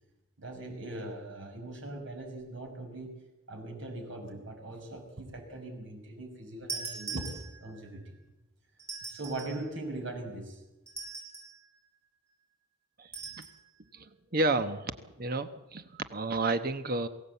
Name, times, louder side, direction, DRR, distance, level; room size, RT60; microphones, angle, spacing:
voice 1, 0.4-7.3 7.6-8.2 9.1-10.6, right 2 dB, 60° right, 2 dB, 6.0 m, -40 dB
sound 1, 6.7-7.8 8.8-9.6 10.9-11.6 13.1-13.6, right 4 dB, 15° right, 7.4 m, -41 dB
voice 2, 13.9-14.9 15.2-17.1, right 2 dB, 45° right, 9 dB, 1.0 m, -31 dB
22.5 x 17.0 x 8.3 m, 0.96 s
head